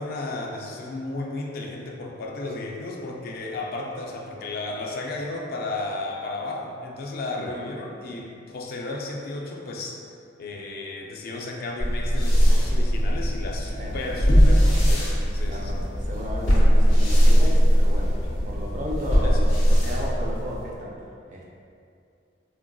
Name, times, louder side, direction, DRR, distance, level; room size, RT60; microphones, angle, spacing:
voice 1, 0.0-10.0 10.4-15.8 19.2-19.4, left 2 dB, 55° left, 0 dB, 0.3 m, -34 dB
sound 1, 11.8-20.7, equal, 80° left, 0.9 m, -20 dB
voice 2, 13.8-14.2 15.4-21.0 21.3-21.5, equal, 40° right, -3 dB, 0.4 m, -34 dB
3.6 x 2.5 x 2.3 m, 2.4 s
head